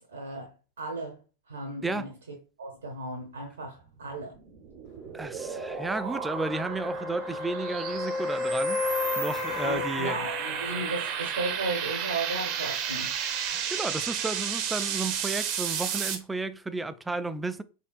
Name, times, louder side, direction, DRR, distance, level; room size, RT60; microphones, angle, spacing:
voice 1, 0.1-0.5 0.8-1.2 1.5-2.1 2.6-4.3 9.6-13.1, right 2 dB, 70° right, 0.8 m, -35 dB
voice 2, 1.8-2.1 5.1-10.2 13.5-17.6, right 2 dB, 10° right, 0.3 m, -33 dB
sound 1, 4.1-16.2, right 8 dB, 40° right, 0.7 m, -33 dB
sound 2, 5.4-11.0 15.1-15.2, left 4 dB, 40° left, 0.7 m, -33 dB
4.3 x 3.5 x 2.4 m
figure-of-eight pair, 90°, 0 cm